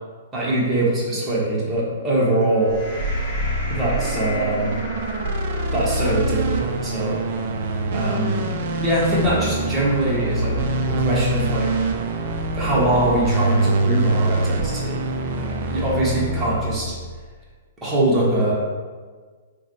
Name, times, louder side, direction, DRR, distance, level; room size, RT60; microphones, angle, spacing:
voice 1, 0.3-2.7 3.7-4.8 5.7-7.2 7.9-8.5 8.8-11.7 12.6-17.0 17.8-18.5, right 1 dB, 15° right, -7 dB, 1.0 m, -22 dB
sound 1, 1.5-8.0, left 1 dB, 35° left, 1.0 m, -36 dB
sound 2, 2.7-17.3, right 2 dB, 50° right, 0.3 m, -25 dB
3.8 x 2.2 x 3.1 m, 1.5 s
figure-of-eight pair, 115°, 0 cm